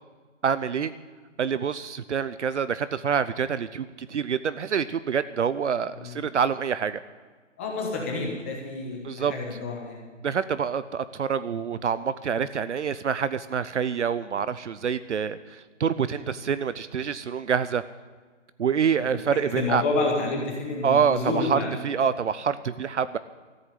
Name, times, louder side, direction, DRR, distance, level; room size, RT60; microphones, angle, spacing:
voice 1, 0.4-0.9 1.4-7.0 9.0-9.3 10.2-17.8 18.6-19.8 20.8-23.2, right 7 dB, 70° right, 14 dB, 0.7 m, -26 dB
voice 2, 7.6-10.0 16.0-16.2 19.6-21.7, left 3 dB, 10° left, 0 dB, 1.0 m, -29 dB
14.0 x 7.9 x 9.8 m, 1.4 s
hypercardioid pair, 165°, 37 cm